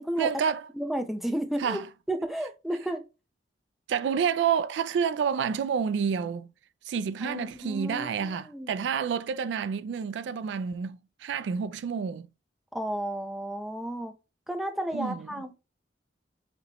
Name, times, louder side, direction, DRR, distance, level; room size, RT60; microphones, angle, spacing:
voice 1, 0.2-0.7 1.6-1.8 3.9-6.5 6.9-12.3 14.9-15.3, right 7 dB, 80° right, 0.3 m, -29 dB
voice 2, 0.8-1.8 2.1-3.0 7.2-8.7 12.7-14.1 14.5-15.6, right 1 dB, ahead, 0.5 m, -32 dB
5.2 x 3.0 x 2.9 m
head